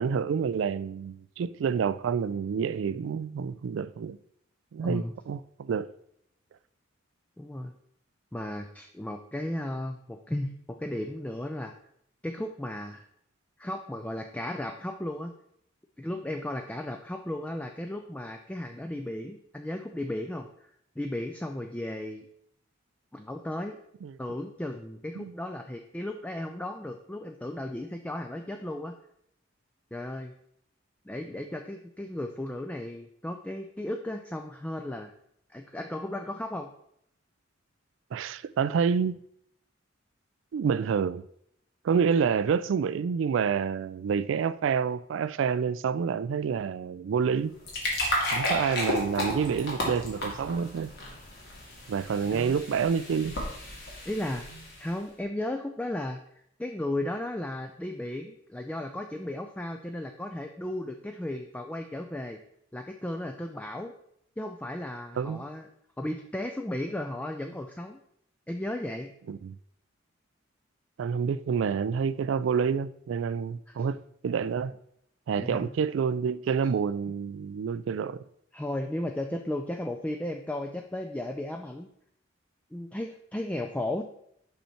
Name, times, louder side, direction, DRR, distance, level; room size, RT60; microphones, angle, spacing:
voice 1, 0.0-4.2 4.7-5.9 24.0-24.1 25.2-25.3 38.1-39.2 40.5-41.2 41.8-47.5 48.3-50.9 51.9-53.4 65.2-65.4 69.3-69.6 71.0-74.0 74.2-74.8 75.3-78.2, right 6 dB, 70° right, 0.3 m, -28 dB
voice 2, 4.8-5.1 7.4-7.7 8.3-11.7 12.2-13.1 13.6-15.3 16.0-20.5 21.0-22.3 23.1-23.8 24.2-28.9 29.9-30.3 31.1-35.1 35.5-36.7 52.3-52.6 54.0-54.5 54.8-56.2 56.6-62.4 62.7-63.9 64.4-65.7 66.0-68.0 68.5-69.1 73.7-73.9 75.4-75.7 78.5-81.9 82.7-84.0, left 1 dB, 5° left, 0.3 m, -35 dB
sound 1, 47.4-54.9, left 1 dB, 60° left, 2.0 m, -33 dB
5.6 x 5.5 x 4.3 m
head